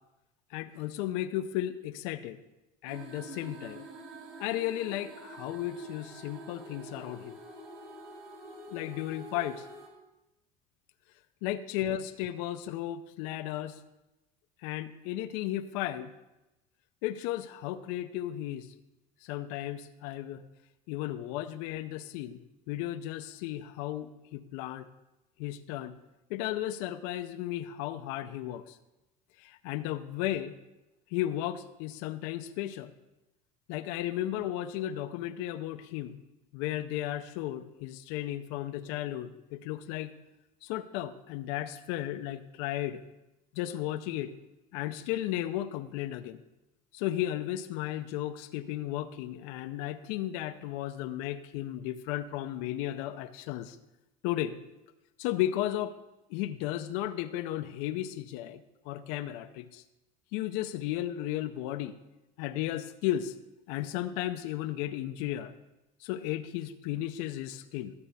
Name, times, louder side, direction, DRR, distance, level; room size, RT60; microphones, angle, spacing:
voice 1, 0.5-2.4 2.8-3.8 4.4-7.4 8.7-9.7 11.4-13.8 14.6-16.1 17.0-18.7 19.2-20.4 20.9-22.4 22.7-24.9 25.4-26.0 26.3-28.8 29.4-30.5 31.1-32.9 33.7-36.2 36.5-40.1 40.6-43.0 43.5-44.3 44.7-46.4 46.9-53.8 54.2-54.6 55.2-55.9 56.3-58.6 58.9-59.8 60.3-62.0 62.4-63.3 63.7-65.5 66.0-67.9, left 13 dB, 80° left, 9 dB, 0.6 m, -34 dB
sound 1, 2.9-9.9, right 2 dB, 75° right, 2.8 m, -47 dB
12.5 x 4.4 x 8.1 m, 0.99 s
supercardioid pair, 100°, 18 cm